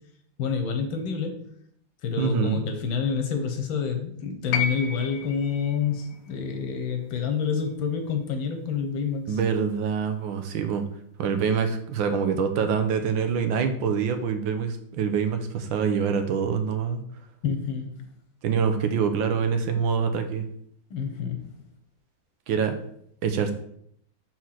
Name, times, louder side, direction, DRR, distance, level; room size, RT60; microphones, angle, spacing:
voice 1, 0.4-1.5 2.0-9.4 17.4-18.0 20.9-21.6, left 6 dB, 85° left, 5 dB, 1.8 m, -28 dB
voice 2, 2.2-2.6 9.3-10.8 11.2-17.0 18.4-20.4 22.5-22.7 23.2-23.5, right 6 dB, 85° right, 7 dB, 1.5 m, -25 dB
sound 1, 4.5-8.7 9.9-10.0, left 6 dB, 65° left, 1.1 m, -34 dB
4.7 x 4.5 x 5.8 m, 0.68 s
omnidirectional pair, 2.1 m